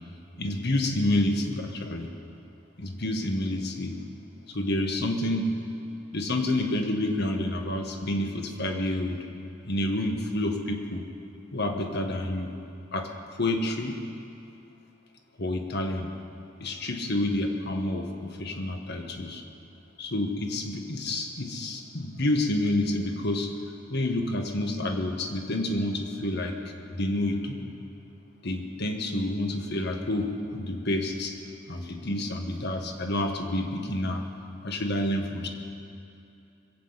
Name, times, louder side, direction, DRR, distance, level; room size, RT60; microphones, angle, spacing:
voice 1, 0.4-2.1 2.8-4.0 4.5-5.7 6.1-9.2 9.6-11.1 11.5-12.5 12.9-13.1 13.4-14.0 15.4-16.1 16.6-19.4 20.0-23.5 23.9-26.6 26.9-27.7 28.4-31.4 31.7-34.2 34.6-35.5, left 1 dB, 60° left, 4 dB, 1.5 m, -29 dB
21.5 x 7.7 x 8.1 m, 2.7 s
head